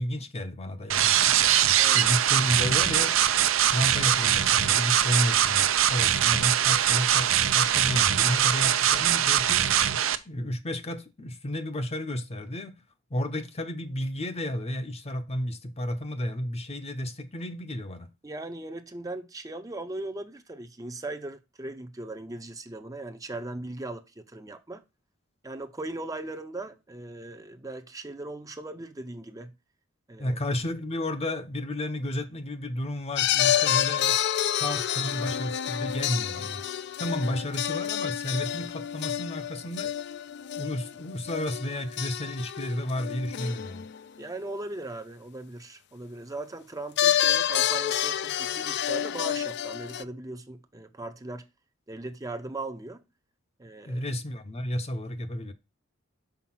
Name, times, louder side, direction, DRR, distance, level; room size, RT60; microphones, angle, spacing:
voice 1, 0.0-1.3 1.9-3.1 3.7-9.7 10.2-12.8 13.1-18.1 30.2-34.2 34.6-36.6 37.0-39.9 40.6-43.9 53.9-55.5, left 1 dB, 30° left, 0.7 m, -32 dB
sound 1, 0.9-10.1, right 10 dB, 70° right, 0.6 m, -22 dB
voice 2, 18.2-24.8 25.4-29.5 30.1-30.4 33.5-33.7 44.2-51.5 51.9-53.0 53.6-54.0, right 2 dB, 15° right, 0.6 m, -38 dB
sound 2, 33.2-44.0 47.0-50.0, left 10 dB, 55° left, 0.4 m, -28 dB
5.8 x 4.6 x 6.0 m
head